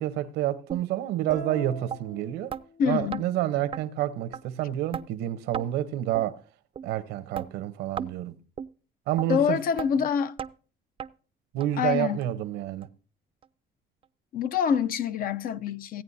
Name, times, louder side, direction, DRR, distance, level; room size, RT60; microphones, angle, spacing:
voice 1, 0.0-2.5 2.9-6.4 6.8-8.3 9.1-9.6 11.5-12.9, right 13 dB, 90° right, 0.9 m, -29 dB
sound 1, 0.7-0.8 1.3-1.4 1.9-2.0 2.5-2.6 3.1-3.2 3.7-3.8 4.3-4.4 4.9-5.1 5.5-5.7 6.1-6.3 6.8-6.9 7.3-7.5 8.0-8.1 8.6-8.7 9.2-9.3 9.8-9.9 10.4-10.5 11.0-11.1 11.6-11.7 12.2-12.3 12.8-12.9 13.4-13.5, right 8 dB, 35° right, 0.4 m, -34 dB
sound 2, 1.3-3.1, right 2 dB, 85° left, 6.4 m, -41 dB
voice 2, 2.8-3.2 9.3-10.4 11.8-12.2 14.3-16.0, left 7 dB, 60° left, 0.6 m, -26 dB
16.5 x 9.0 x 2.7 m
cardioid pair, 110°, 17 cm